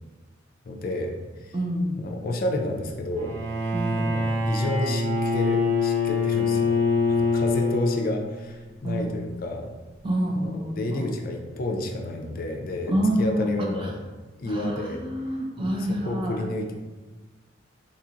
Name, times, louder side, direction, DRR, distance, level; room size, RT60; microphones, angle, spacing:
voice 1, 0.6-1.6 2.0-3.4 3.9-6.8 7.1-9.7 10.3-14.0 14.4-15.1 15.9-16.8, left 1 dB, 45° left, 3 dB, 0.4 m, -30 dB
voice 2, 1.5-2.0 3.7-4.2 8.8-9.2 10.0-11.1 12.9-13.5 14.5-16.4, right 1 dB, 25° right, 0 dB, 0.4 m, -27 dB
Bowed string instrument, 3.2-8.4, left 3 dB, 85° right, 0.7 m, -24 dB
3.9 x 2.4 x 2.8 m, 1.3 s
head